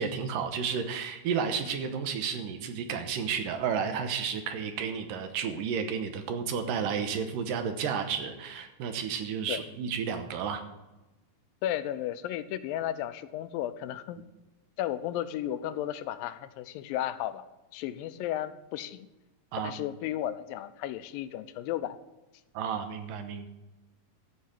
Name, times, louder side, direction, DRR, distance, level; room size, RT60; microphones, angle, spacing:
voice 1, 0.0-10.6 19.5-19.7 22.5-23.5, right 6 dB, 75° right, 7 dB, 2.6 m, -32 dB
voice 2, 11.6-14.2 14.8-17.5 17.7-19.1 19.6-22.0, left 12 dB, 90° left, 12 dB, 2.4 m, -34 dB
14.0 x 4.7 x 9.1 m, 1.0 s
omnidirectional pair, 4.0 m